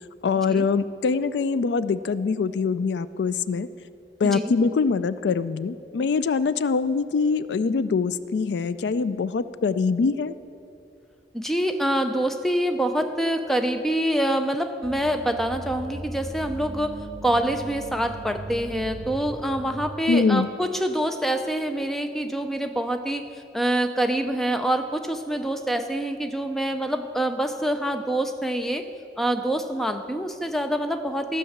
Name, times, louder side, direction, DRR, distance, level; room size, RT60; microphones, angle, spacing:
voice 1, 0.2-3.7 4.2-10.3 20.1-20.5, left 5 dB, 80° left, 15 dB, 0.4 m, -23 dB
voice 2, 11.3-28.9 29.2-31.4, right 1 dB, ahead, 7 dB, 0.5 m, -26 dB
sound 1, 14.8-19.9, equal, 35° right, 1.9 m, -38 dB
14.0 x 6.5 x 7.2 m, 2.6 s
head